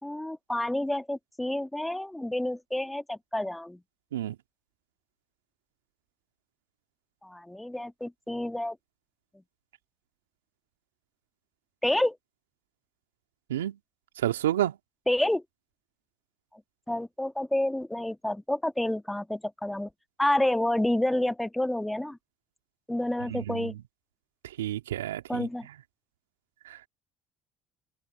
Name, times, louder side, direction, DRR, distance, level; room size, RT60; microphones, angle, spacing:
voice 1, 0.0-3.8 7.2-8.8 11.8-12.2 15.1-15.4 16.9-19.9 20.2-22.2 22.9-23.7 25.3-25.7, left 1 dB, 5° left, 1.6 m, -29 dB
voice 2, 14.2-14.8 23.3-23.7 24.6-25.5 26.7-26.9, right 12 dB, 85° right, 2.4 m, -30 dB
open air
hypercardioid pair, 65°, 0 cm